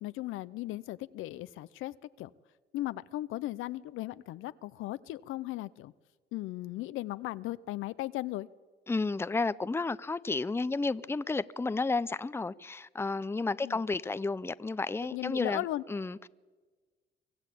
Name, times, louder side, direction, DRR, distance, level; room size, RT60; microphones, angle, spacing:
voice 1, 0.0-2.3 2.7-5.9 6.3-8.5 13.6-13.8 15.1-15.8, left 16 dB, 90° left, 0.6 m, -37 dB
voice 2, 8.9-16.3, left 3 dB, 10° left, 0.5 m, -32 dB
24.5 x 14.5 x 8.5 m
cardioid pair, 90°, 20 cm